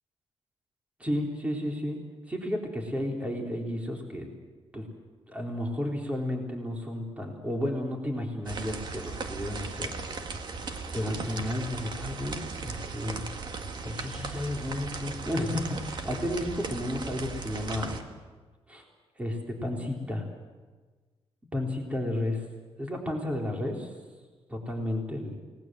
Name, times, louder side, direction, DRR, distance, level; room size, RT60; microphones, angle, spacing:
voice 1, 1.0-2.0 2.3-4.3 4.7-4.9 5.3-9.9 10.9-13.3 13.8-18.0 18.7-18.8 19.2-20.3 21.5-22.4 22.8-23.9 24.5-25.4, left 1 dB, 10° right, 1 dB, 3.9 m, -32 dB
sound 1, 8.5-18.0, right 4 dB, 45° right, 1.9 m, -37 dB
29.0 x 19.5 x 7.7 m, 1.4 s
wide cardioid pair, 155°, 10 cm